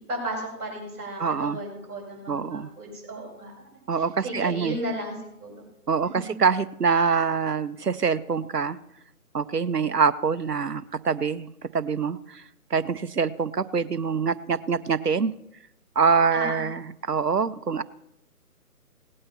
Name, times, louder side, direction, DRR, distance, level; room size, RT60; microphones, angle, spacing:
voice 1, 0.0-5.6 6.0-6.3 16.3-16.7, right 1 dB, 15° right, -7 dB, 5.6 m, -35 dB
voice 2, 1.2-1.6 2.3-2.7 3.9-4.8 5.9-8.8 9.3-11.5 11.7-12.4 12.7-15.3 16.0-17.8, right 5 dB, 90° right, 13 dB, 0.8 m, -25 dB
17.5 x 8.7 x 5.6 m, 0.81 s
figure-of-eight pair, 150°, 46 cm